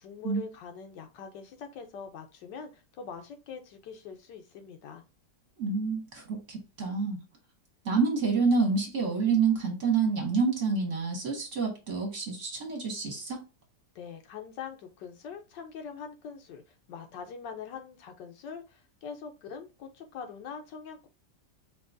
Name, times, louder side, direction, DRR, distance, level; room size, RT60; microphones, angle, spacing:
voice 1, 0.0-5.0 13.9-16.6 16.9-21.1, left 6 dB, 75° left, 1.4 m, -43 dB
voice 2, 5.6-7.2 7.8-13.4, right 4 dB, 45° right, 1.3 m, -28 dB
4.7 x 3.0 x 2.5 m
omnidirectional pair, 2.0 m